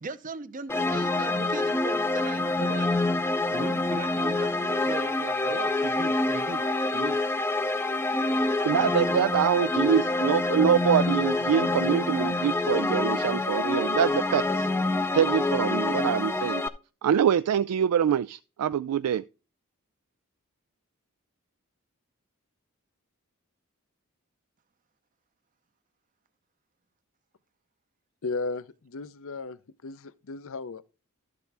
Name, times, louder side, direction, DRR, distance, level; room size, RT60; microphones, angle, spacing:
voice 1, 0.0-2.9 3.5-6.6 6.9-7.2 8.9-9.0, right 3 dB, 35° right, 0.6 m, -38 dB
sound 1, 0.7-16.7, left 2 dB, 10° left, 0.5 m, -26 dB
voice 2, 8.6-14.7 15.1-16.6 17.0-19.2, right 8 dB, 90° right, 0.3 m, -25 dB
voice 3, 28.2-30.8, left 3 dB, 60° left, 0.6 m, -35 dB
12.0 x 6.9 x 3.4 m
head